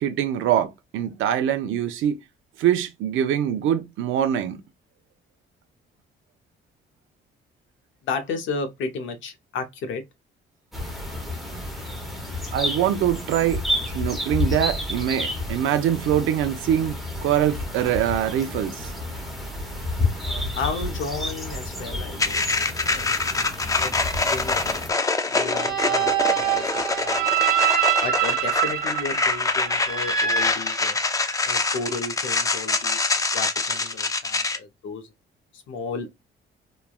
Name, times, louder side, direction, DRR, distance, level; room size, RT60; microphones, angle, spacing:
voice 1, 0.0-2.2 2.6-4.6 12.5-13.6 13.9-18.9, right 10 dB, 80° right, 0.5 m, -23 dB
voice 2, 8.0-10.0 20.2-23.1 23.6-23.9 24.3-24.8 25.3-27.4 28.0-31.0 31.4-33.1 33.3-35.1 35.5-36.1, left 4 dB, 75° left, 0.6 m, -33 dB
sound 1, 10.7-24.9, left 2 dB, ahead, 0.8 m, -30 dB
sound 2, 22.2-34.6, left 3 dB, 15° left, 0.4 m, -25 dB
sound 3, 25.4-31.5, right 10 dB, 50° right, 0.8 m, -25 dB
3.1 x 2.2 x 2.3 m
cardioid pair, 90°, 20 cm